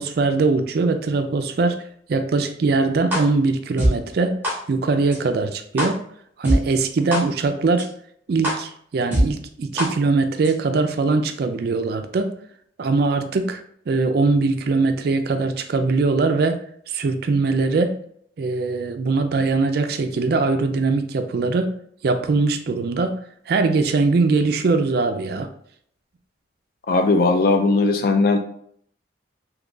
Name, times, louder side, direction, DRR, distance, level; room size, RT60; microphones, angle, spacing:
voice 1, 0.0-1.8 2.1-4.4 4.7-6.0 6.4-7.9 8.3-12.3 12.8-16.6 16.9-18.0 18.4-21.7 22.0-23.2 23.5-25.5, right 3 dB, 55° right, 7 dB, 0.3 m, -21 dB
sound 1, 3.1-3.2 3.8-3.9 4.4-4.5 5.1-5.2 5.8-5.9 6.4-6.6 7.1-7.2 7.8-7.9 8.4-8.5 9.1-9.2 9.8-9.9 10.4-10.5, equal, 10° right, 1.3 m, -20 dB
voice 2, 26.9-28.4, left 3 dB, 50° left, 6 dB, 0.4 m, -18 dB
3.8 x 2.9 x 2.3 m, 0.64 s
head